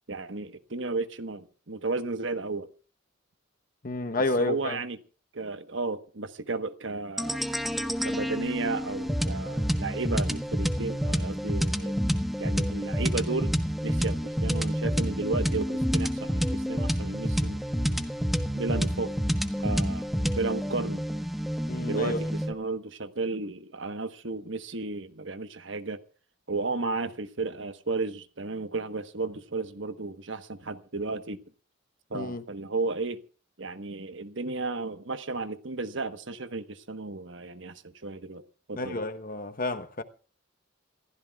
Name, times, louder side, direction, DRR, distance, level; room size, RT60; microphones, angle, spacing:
voice 1, 0.1-2.7 4.4-5.0 5.3-7.4 8.0-12.0 12.4-13.5 13.8-18.1 18.5-19.1 19.6-20.1 20.3-21.0 21.8-26.0 26.5-31.4 32.1-33.2 33.6-38.4 38.7-39.0, right 3 dB, 65° right, 1.3 m, -33 dB
voice 2, 3.8-4.8 21.7-22.2 32.1-32.4 38.7-40.0, left 2 dB, 45° left, 1.1 m, -30 dB
sound 1, 7.2-22.5, equal, ahead, 1.3 m, -28 dB
27.5 x 15.0 x 2.4 m
head